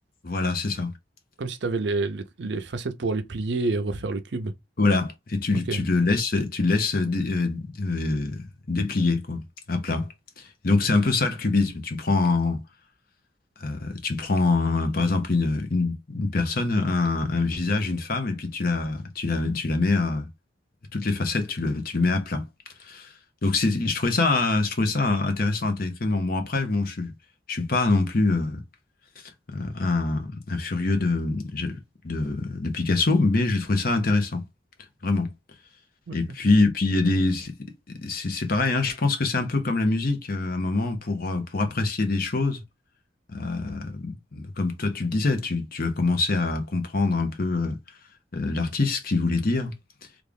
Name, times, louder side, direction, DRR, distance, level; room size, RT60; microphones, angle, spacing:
voice 1, 0.2-0.9 4.8-10.1 10.4-12.6 13.6-20.3 20.9-22.5 22.8-23.1 23.4-27.1 27.5-28.6 29.5-34.4 35.0-35.3 36.1-37.5 38.0-42.6 43.3-47.8 48.3-49.7, left 3 dB, 50° left, 0.8 m, -25 dB
voice 2, 1.4-4.5 5.7-5.9 10.9-11.0 36.1-36.2, right 3 dB, 65° right, 0.5 m, -28 dB
3.2 x 2.4 x 3.5 m
head